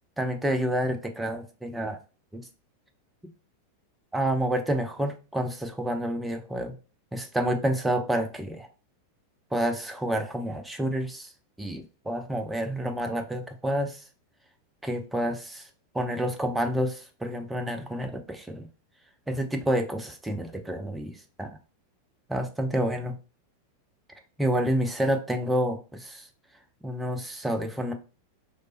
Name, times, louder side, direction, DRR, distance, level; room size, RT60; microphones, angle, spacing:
voice 1, 0.2-2.0 2.3-2.4 4.1-6.8 7.1-8.7 9.5-11.3 11.6-14.0 14.8-15.7 15.9-18.7 19.3-21.5 22.3-23.1 24.4-26.3 26.8-27.9, right 1 dB, 5° right, 4 dB, 0.4 m, -29 dB
3.1 x 2.0 x 2.8 m, 0.34 s
figure-of-eight pair, 90°, 0 cm